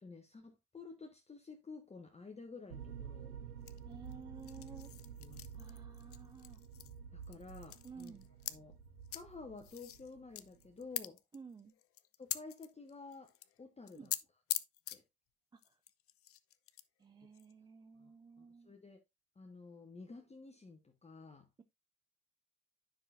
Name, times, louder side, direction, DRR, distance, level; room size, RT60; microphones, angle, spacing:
voice 1, 0.0-3.4 5.2-5.8 7.1-8.2 8.5-8.8 9.1-11.2 12.2-14.1 14.9-15.0 18.0-18.1 18.4-19.0 19.3-21.5, left 4 dB, 15° left, 1.2 m, -52 dB
sound 1, 2.7-11.0, right 8 dB, 85° right, 1.0 m, -52 dB
sound 2, 3.7-7.0 7.2-8.5 9.0-9.2 9.6-13.6 13.9-14.2 14.5-15.0 15.6-16.8 17.3-17.5, left 13 dB, 30° left, 0.6 m, -44 dB
sound 3, 3.7-9.8, right 6 dB, 50° right, 2.0 m, -56 dB
voice 2, 3.9-4.9 5.5-6.6 7.8-8.3 11.3-11.7 14.0-14.1 15.5-15.6 17.0-18.7, right 5 dB, 10° right, 0.4 m, -53 dB
9.8 x 6.1 x 2.5 m
figure-of-eight pair, 70°, 45 cm